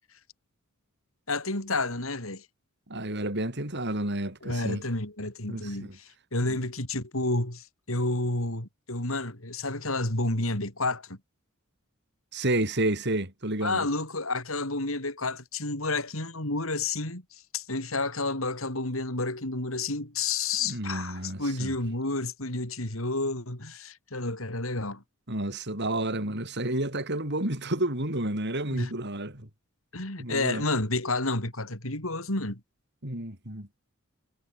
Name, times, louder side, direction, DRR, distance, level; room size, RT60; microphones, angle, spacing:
voice 1, 1.3-2.5 4.4-11.2 13.6-17.2 17.5-25.0 28.7-28.9 29.9-32.6, left 2 dB, 70° left, 5.6 m, -30 dB
voice 2, 2.9-4.8 5.5-5.7 6.4-6.5 12.3-13.9 20.6-21.7 25.3-29.5 30.2-30.6 33.0-33.7, right 1 dB, 55° right, 6.6 m, -30 dB
head